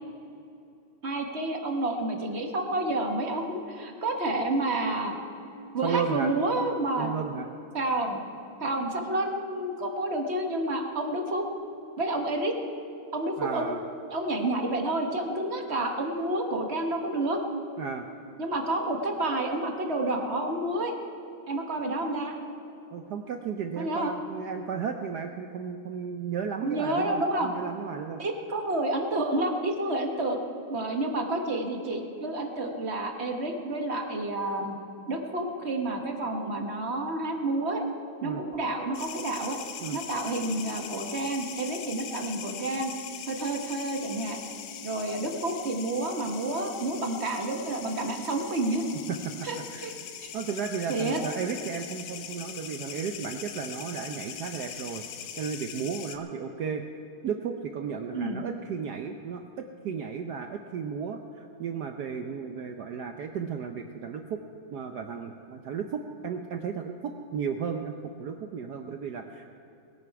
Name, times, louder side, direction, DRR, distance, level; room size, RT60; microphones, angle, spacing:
voice 1, 1.0-5.1 5.7-7.1 7.7-8.2 8.6-11.4 12.0-12.5 13.1-13.8 14.1-17.4 18.4-20.9 21.5-22.4 23.8-24.1 26.6-27.5 28.2-30.4 30.7-34.8 35.1-37.8 38.2-39.6 39.9-42.9 43.3-44.4 44.8-48.8 49.4-49.9 50.2-50.3 50.9-51.2 58.1-58.4, right 2 dB, 35° right, 3 dB, 1.2 m, -29 dB
voice 2, 5.8-6.3 7.0-7.5 13.4-13.8 17.8-18.1 22.9-28.2 38.2-38.4 39.8-40.0 49.1-49.2 49.7-49.9 50.3-56.8 57.2-64.4 64.7-69.5, right 6 dB, 70° right, 5 dB, 0.9 m, -34 dB
sound 1, 38.9-56.2, left 8 dB, 85° left, 1.7 m, -41 dB
20.5 x 11.0 x 4.7 m, 2.7 s
omnidirectional pair, 2.4 m